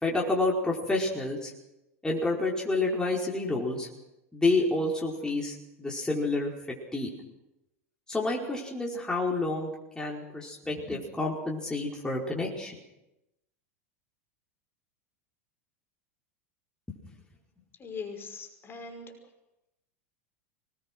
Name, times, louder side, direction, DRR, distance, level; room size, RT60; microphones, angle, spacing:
voice 1, 0.0-1.5 2.0-3.9 4.3-6.5 6.9-7.1 8.1-12.7 16.9-17.0, left 2 dB, 10° left, -3 dB, 5.0 m, -29 dB
voice 2, 17.8-19.1, left 5 dB, 30° left, 4 dB, 5.5 m, -40 dB
25.0 x 20.5 x 6.3 m, 0.92 s
hypercardioid pair, 90°, 8 cm